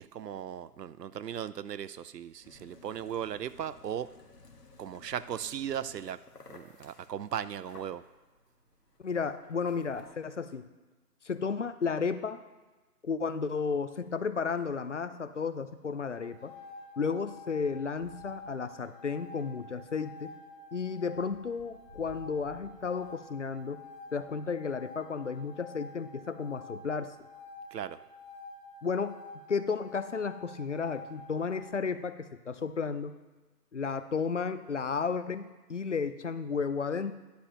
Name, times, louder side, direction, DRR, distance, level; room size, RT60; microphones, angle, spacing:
voice 1, 0.0-4.1 4.8-6.2 6.5-8.0 27.7-28.0, right 9 dB, 90° right, 16 dB, 0.6 m, -37 dB
sound 1, 2.4-10.1, left 3 dB, 80° left, 1.5 m, -56 dB
voice 2, 9.0-10.7 11.2-12.4 13.0-16.5 17.0-20.3 20.7-23.8 24.1-27.1 28.8-29.2 29.5-33.1 33.7-37.1, left 5 dB, 50° left, 12 dB, 0.5 m, -33 dB
sound 2, 15.1-24.5 25.2-26.5 27.2-27.3 27.6-27.7 29.3-29.5 30.1-30.3 30.8-32.0, left 1 dB, 10° right, 1.2 m, -60 dB
sound 3, 15.9-31.8, left 2 dB, 25° left, 2.6 m, -49 dB
10.0 x 5.0 x 5.6 m, 1.2 s
hypercardioid pair, 170°, 47 cm